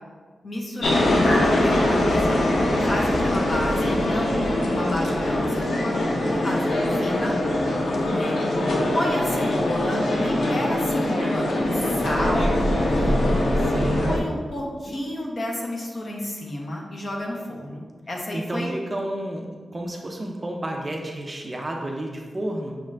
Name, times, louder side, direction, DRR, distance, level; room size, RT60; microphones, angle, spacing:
voice 1, 0.4-7.3 8.0-8.5 8.9-13.4 14.0-18.7, left 1 dB, 40° left, -1 dB, 0.7 m, -31 dB
sound 1, 0.8-14.2, left 1 dB, 85° left, 0.6 m, -22 dB
voice 2, 13.7-14.1 14.9-15.0 18.3-19.5 19.7-22.8, right 1 dB, 25° right, 1 dB, 0.4 m, -31 dB
6.4 x 2.4 x 3.2 m, 1.5 s
wide cardioid pair, 140°, 0 cm